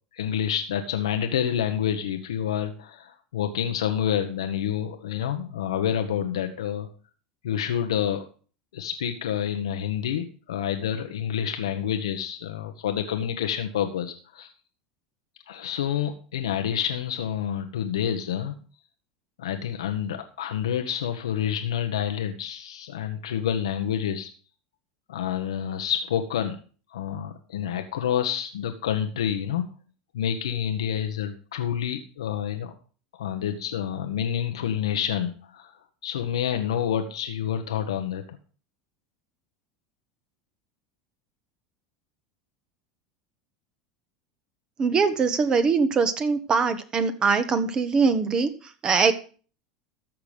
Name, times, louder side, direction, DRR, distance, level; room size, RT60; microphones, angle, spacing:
voice 1, 0.1-6.9 7.4-8.2 8.7-14.5 15.5-18.5 19.4-24.3 25.1-26.6 26.9-29.7 30.1-32.7 33.1-35.7 36.0-38.2, left 9 dB, 90° left, 6 dB, 1.2 m, -28 dB
voice 2, 44.8-48.5 48.8-49.1, right 5 dB, 30° right, 10 dB, 1.5 m, -22 dB
14.0 x 6.1 x 5.1 m, 0.40 s
hypercardioid pair, 100°, 3 cm